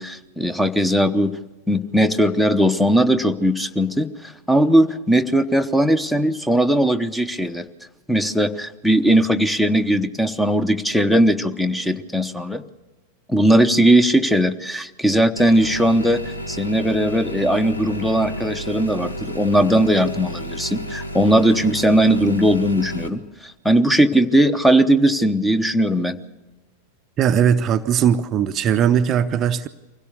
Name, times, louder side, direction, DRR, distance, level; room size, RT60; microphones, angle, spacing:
voice 1, 0.0-1.3 1.7-7.7 8.1-12.6 13.3-16.2 16.5-26.2, right 1 dB, 5° left, 12 dB, 1.0 m, -18 dB
sound 1, 15.4-23.1, equal, 80° left, 1.6 m, -32 dB
voice 2, 27.2-29.7, right 8 dB, 30° right, 9 dB, 0.7 m, -19 dB
24.5 x 16.5 x 6.9 m, 1.1 s
figure-of-eight pair, 90°, 0 cm